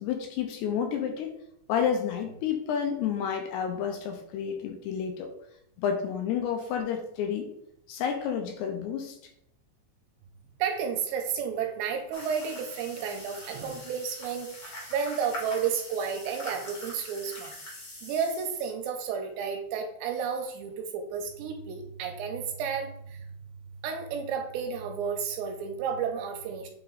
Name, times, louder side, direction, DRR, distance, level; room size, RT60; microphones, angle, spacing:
voice 1, 0.0-1.4 1.7-5.3 5.8-7.5 7.9-9.2, left 7 dB, 80° left, 4 dB, 2.5 m, -30 dB
voice 2, 10.6-17.6 18.0-23.3 23.8-26.7, right 6 dB, 80° right, 3 dB, 2.8 m, -32 dB
sound 1, 12.1-18.7, left 1 dB, 60° left, 1.1 m, -43 dB
8.5 x 3.0 x 3.8 m, 0.74 s
omnidirectional pair, 5.2 m